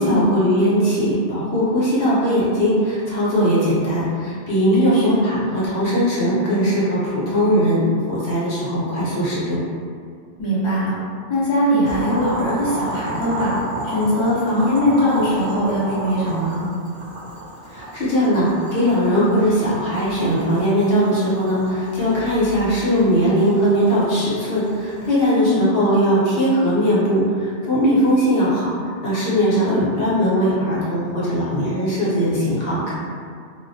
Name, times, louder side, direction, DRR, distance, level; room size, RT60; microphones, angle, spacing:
voice 1, 0.0-9.6 17.7-28.7 29.0-32.9, equal, 60° left, -9 dB, 0.9 m, -19 dB
voice 2, 10.4-10.9 11.3-13.5 13.8-16.6 25.4-25.6 29.7-29.8, left 1 dB, 35° left, -9 dB, 0.5 m, -20 dB
Boiling, 11.9-25.1, right 1 dB, 60° right, 0.8 m, -32 dB
2.3 x 2.1 x 2.6 m, 2.2 s
omnidirectional pair, 1.2 m